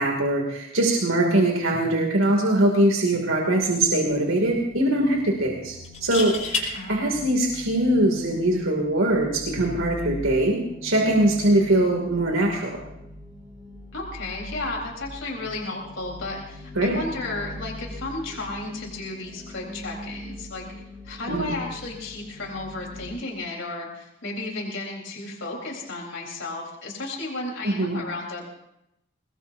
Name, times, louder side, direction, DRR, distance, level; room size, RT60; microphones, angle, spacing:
voice 1, 0.0-12.8 16.8-17.0 21.3-21.5 27.6-28.0, right 1 dB, 80° right, 0 dB, 2.6 m, -22 dB
sound 1, 3.0-3.2 3.6-3.7 5.8-6.7 8.5-8.7, left 4 dB, 35° left, 5.1 m, -29 dB
sound 2, 3.9-23.1, left 1 dB, 10° right, 5.7 m, -42 dB
voice 2, 6.7-7.3 13.9-20.6 21.0-28.4, left 2 dB, 65° left, -1 dB, 4.1 m, -33 dB
23.0 x 20.0 x 2.7 m, 0.81 s
head